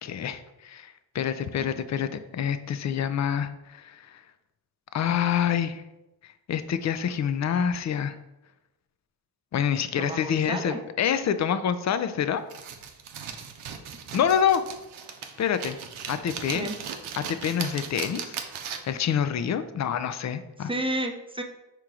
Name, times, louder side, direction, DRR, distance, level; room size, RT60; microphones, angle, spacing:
voice 1, 0.0-4.2 4.9-5.8 6.2-8.2 9.5-12.4 14.1-14.6 15.4-15.8 16.1-16.7 17.2-18.4 18.9-20.7, left 8 dB, 35° left, 11 dB, 0.4 m, -27 dB
voice 2, 10.0-10.8 16.5-16.8 20.6-21.4, right 1 dB, 10° right, 4 dB, 0.6 m, -31 dB
sound 1, 12.5-19.0, right 7 dB, 75° right, 0.7 m, -38 dB
4.5 x 3.0 x 3.7 m, 0.97 s
supercardioid pair, 45°, 49 cm